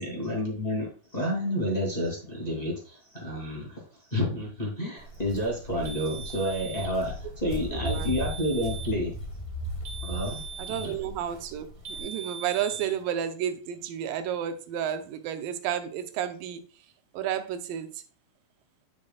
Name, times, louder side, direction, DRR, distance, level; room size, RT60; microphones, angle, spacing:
voice 1, 0.0-3.8 4.1-9.1 10.0-10.4 10.7-10.9, equal, 10° left, -4 dB, 2.5 m, -30 dB
Walk footsteps, 5.0-12.0, equal, 35° left, 0.5 m, -37 dB
sound 1, 5.8-7.0 7.8-9.0 9.8-11.0 11.8-13.0, right 6 dB, 55° right, 2.0 m, -41 dB
voice 2, 7.7-8.1 10.6-11.7 12.0-16.6 17.1-18.0, right 9 dB, 85° right, 9 dB, 2.5 m, -31 dB
10.0 x 6.3 x 2.4 m, 0.39 s
omnidirectional pair, 3.9 m